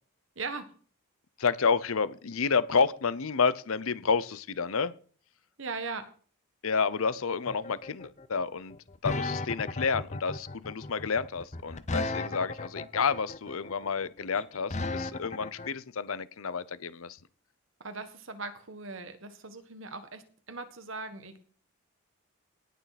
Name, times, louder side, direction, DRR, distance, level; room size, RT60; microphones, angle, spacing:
voice 1, 0.3-0.7 5.6-6.1 17.8-21.4, right 4 dB, 60° right, 8 dB, 1.5 m, -39 dB
voice 2, 1.4-4.9 6.6-8.8 9.0-17.2, left 5 dB, 70° left, 17 dB, 0.7 m, -30 dB
sound 1, 7.5-15.7, left 2 dB, 30° left, 0.7 m, -35 dB
18.5 x 6.4 x 4.2 m, 0.43 s
head